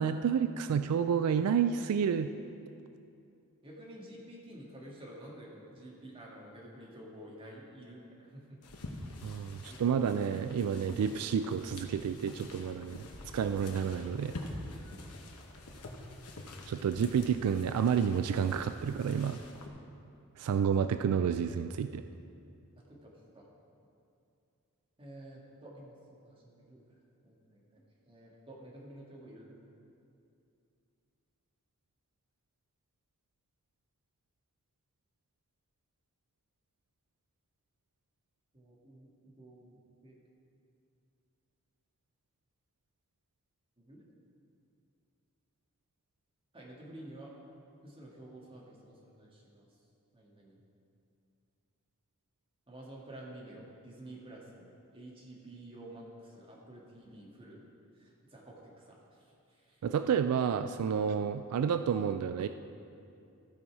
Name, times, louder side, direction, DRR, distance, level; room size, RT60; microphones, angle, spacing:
voice 1, 0.0-2.3 9.2-13.0 13.3-14.3 16.7-19.4 20.4-22.0 59.8-62.5, right 7 dB, 80° right, 9 dB, 0.3 m, -30 dB
voice 2, 3.6-8.6 9.6-10.3 22.9-23.5 25.0-26.0 26.2-27.0 27.2-29.5 38.5-39.8 40.0-40.2 43.8-44.0 46.5-47.3 47.8-49.7 50.1-50.6 52.7-54.7 54.9-57.6 58.0-59.8, right 1 dB, 25° right, -4 dB, 1.7 m, -50 dB
sound 1, 8.6-19.7, left 2 dB, 85° left, 1.0 m, -46 dB
14.5 x 5.5 x 4.7 m, 2.6 s
head